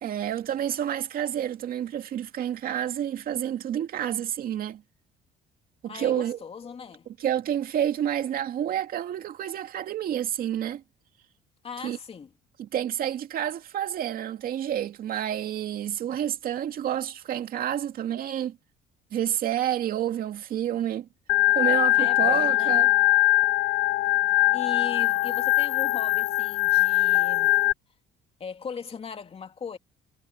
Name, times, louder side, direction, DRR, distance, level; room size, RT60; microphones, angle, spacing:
voice 1, 0.0-4.8 5.8-6.4 7.2-10.8 11.8-12.0 12.6-18.6 19.1-21.1 21.5-22.9, right 10 dB, 60° right, 2.3 m, -29 dB
voice 2, 5.8-7.1 11.6-12.3 22.0-22.8 24.5-27.6 28.4-29.8, left 6 dB, 35° left, 2.7 m, -38 dB
Organ, 21.3-27.7, left 17 dB, 85° left, 0.5 m, -22 dB
cardioid pair, 110°, 17 cm